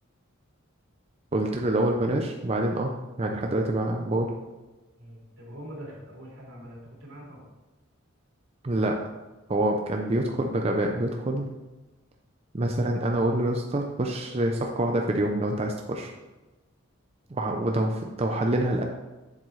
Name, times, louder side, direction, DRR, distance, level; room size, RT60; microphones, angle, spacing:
voice 1, 1.3-2.9 3.2-4.3 8.6-9.0 9.5-11.4 12.5-16.1 17.3-18.8, right 1 dB, 30° right, 2 dB, 0.5 m, -26 dB
voice 2, 5.0-7.5 17.4-17.5 18.7-18.8, equal, 80° right, -4 dB, 2.8 m, -44 dB
7.5 x 7.3 x 3.2 m, 1.1 s
head